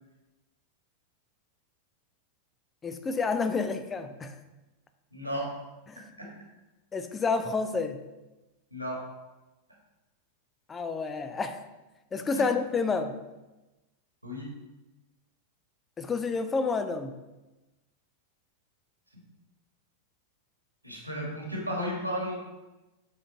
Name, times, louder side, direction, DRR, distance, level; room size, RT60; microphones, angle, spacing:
voice 1, 2.8-4.4 5.9-6.1 6.9-8.0 10.7-11.6 12.1-13.2 16.0-17.1, left 4 dB, 20° left, 9 dB, 0.5 m, -29 dB
voice 2, 5.1-5.5 6.2-6.3 8.7-9.0 12.3-12.5 14.2-14.5 19.1-19.2 20.8-22.4, equal, 90° right, -2 dB, 1.5 m, -33 dB
7.7 x 3.8 x 3.9 m, 1.1 s
figure-of-eight pair, 90°, 0 cm